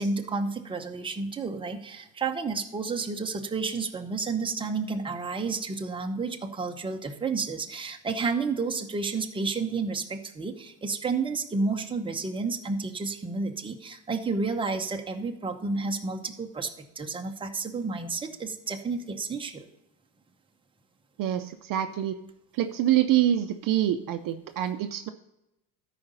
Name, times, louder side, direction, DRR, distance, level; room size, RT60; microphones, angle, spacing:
voice 1, 0.0-19.6, right 4 dB, 10° right, 3 dB, 0.8 m, -31 dB
voice 2, 21.2-22.2 22.5-25.1, right 12 dB, 45° right, 8 dB, 0.6 m, -26 dB
13.0 x 5.0 x 5.5 m, 0.88 s
cardioid pair, 125°, 46 cm